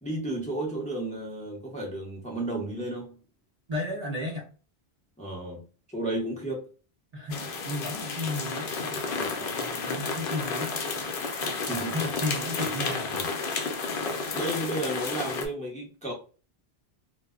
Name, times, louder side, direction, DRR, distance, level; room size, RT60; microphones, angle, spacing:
voice 1, 0.0-3.2 5.2-5.6 5.9-6.7 11.7-12.0 14.3-16.1, right 1 dB, 10° left, 0.6 m, -32 dB
voice 2, 3.7-4.5 7.1-10.8 11.8-13.3, left 1 dB, 45° right, 0.6 m, -34 dB
sound 1, 7.3-15.5, left 4 dB, 65° left, 0.7 m, -31 dB
2.1 x 2.0 x 3.5 m
omnidirectional pair, 1.1 m